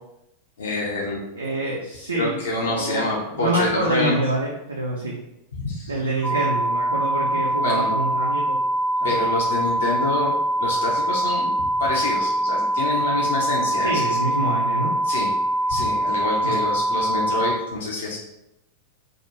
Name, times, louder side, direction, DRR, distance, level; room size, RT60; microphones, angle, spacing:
voice 1, 0.6-1.2 2.1-4.2 5.6-5.9 6.3-6.4 7.6-7.9 9.0-10.3 10.6-14.3 15.0-15.3 15.7-18.2, left 2 dB, 60° left, -2 dB, 0.4 m, -27 dB
voice 2, 1.4-5.1 5.9-8.6 9.0-9.2 13.8-15.0 16.4-16.6, right 1 dB, 80° right, -4 dB, 0.4 m, -26 dB
sound 1, 6.2-17.6, right 1 dB, 5° left, 0.4 m, -23 dB
2.3 x 2.1 x 2.8 m, 0.85 s
figure-of-eight pair, 90°, 0 cm